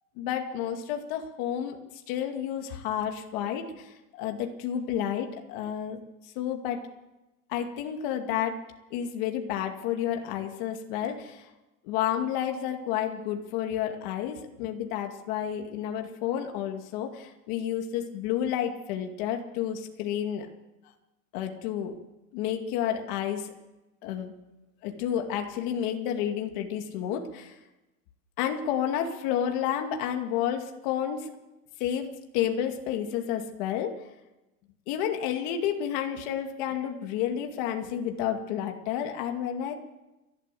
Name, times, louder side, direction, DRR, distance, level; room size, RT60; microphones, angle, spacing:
voice 1, 0.2-1.8 2.1-3.7 4.2-6.0 6.4-6.8 7.5-8.6 8.9-11.4 11.8-20.5 21.3-21.9 22.3-23.5 24.0-24.3 24.8-27.5 28.4-31.3 31.8-32.1 32.3-33.9 34.9-39.7, left 9 dB, 30° left, 4 dB, 2.3 m, -30 dB
29.5 x 12.0 x 7.7 m, 1.0 s
supercardioid pair, 175°, 45 cm